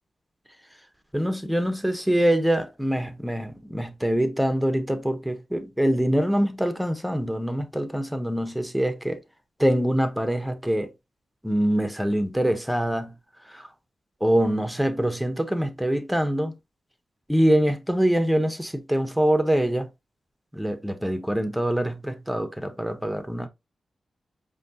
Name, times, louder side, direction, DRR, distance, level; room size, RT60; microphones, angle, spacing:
voice 1, 1.1-9.2 9.6-10.9 11.4-13.1 13.4-13.7 14.2-16.5 17.3-19.9 20.5-23.5, equal, 5° right, 0.9 m, -24 dB
5.0 x 2.8 x 2.7 m
cardioid pair, 60°, 0 cm